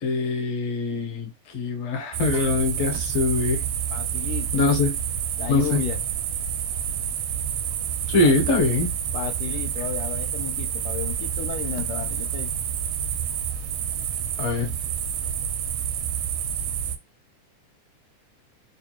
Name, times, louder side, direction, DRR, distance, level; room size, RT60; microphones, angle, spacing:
voice 1, 0.0-3.6 4.5-5.0 5.5-5.8 8.1-8.9 14.4-14.7, left 3 dB, 65° left, 1.9 m, -23 dB
sound 1, 2.1-17.0, right 8 dB, 80° right, 1.4 m, -28 dB
voice 2, 3.9-4.7 5.4-6.0 8.2-8.3 9.1-12.5, left 10 dB, 85° left, 2.0 m, -33 dB
4.8 x 2.3 x 2.9 m
omnidirectional pair, 3.5 m